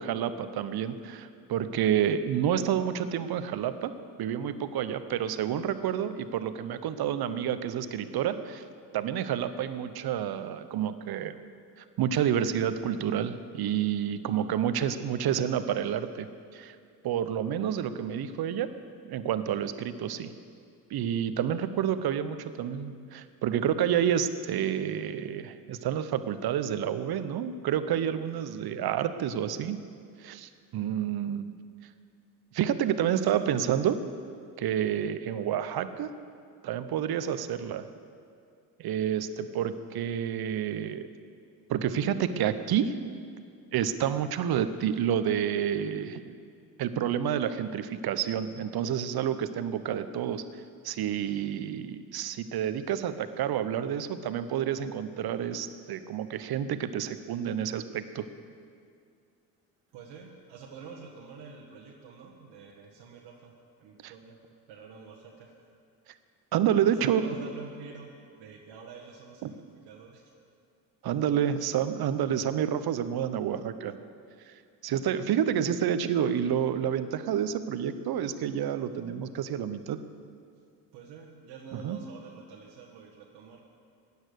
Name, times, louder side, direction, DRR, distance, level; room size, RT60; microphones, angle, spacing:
voice 1, 0.0-3.9 4.2-8.6 8.9-11.4 12.0-16.3 16.5-16.8 17.0-18.7 19.0-20.3 20.9-29.8 30.2-31.4 32.5-34.0 34.6-36.1 36.6-37.9 38.8-41.1 41.7-42.9 43.7-46.2 46.8-50.4 50.8-58.3 64.0-64.1 66.5-67.2 69.4-69.5 71.0-73.9 74.8-80.0 81.7-82.0, right 9 dB, 55° right, 11 dB, 1.0 m, -29 dB
voice 2, 33.2-33.6 59.9-64.4 64.7-65.7 66.8-70.3 72.7-72.8 75.1-75.2 80.9-83.6, right 5 dB, 70° right, -2 dB, 1.7 m, -48 dB
16.0 x 10.0 x 6.6 m, 2.3 s
hypercardioid pair, 60°, 45 cm